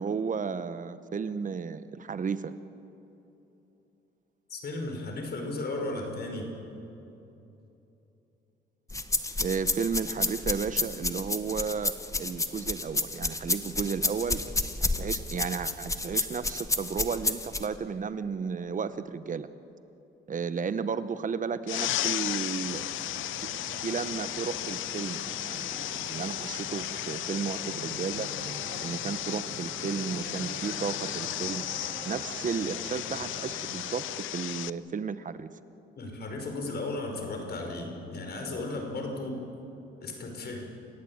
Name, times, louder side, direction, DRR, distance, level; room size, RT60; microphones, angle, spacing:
voice 1, 0.0-2.5 9.4-14.4 14.8-19.5 20.3-22.8 23.8-28.3 28.8-31.6 32.0-35.5, right 6 dB, 40° right, 13 dB, 1.1 m, -33 dB
voice 2, 4.5-6.5 36.0-39.4 40.0-40.6, left 2 dB, 55° left, 3 dB, 5.3 m, -35 dB
sound 1, 8.9-17.7, left 2 dB, 15° left, 1.5 m, -30 dB
sound 2, 21.7-34.7, left 14 dB, 80° left, 0.6 m, -35 dB
sound 3, 22.6-34.1, right 4 dB, 55° right, 4.3 m, -44 dB
28.5 x 16.0 x 8.8 m, 3.0 s
cardioid pair, 90°, 20 cm